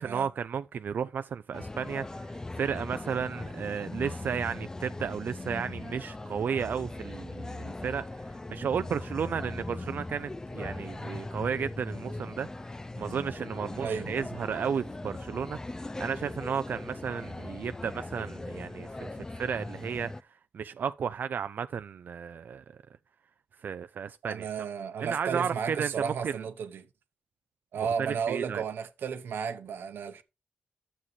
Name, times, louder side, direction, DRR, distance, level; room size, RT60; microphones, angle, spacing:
voice 1, 0.0-12.5 13.0-20.3 20.5-22.8 23.6-24.5 25.0-26.4 28.0-28.6, right 7 dB, 65° right, 0.3 m, -33 dB
sound 1, 1.5-20.2, left 2 dB, 20° left, 0.4 m, -39 dB
voice 2, 24.2-26.9 27.7-30.2, right 6 dB, 85° right, 0.9 m, -33 dB
9.9 x 7.4 x 3.2 m
cardioid pair, 85°, 3 cm